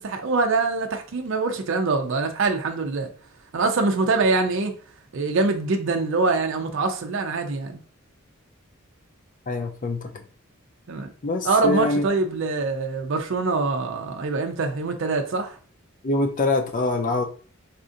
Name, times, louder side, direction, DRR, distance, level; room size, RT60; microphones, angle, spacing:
voice 1, 0.0-3.1 3.5-4.7 5.1-7.8 10.9-11.1 11.4-15.6, right 3 dB, 60° right, 0.5 m, -24 dB
voice 2, 9.5-10.2 11.2-12.0 16.0-17.2, left 2 dB, 40° left, 0.5 m, -24 dB
4.1 x 2.6 x 2.5 m
head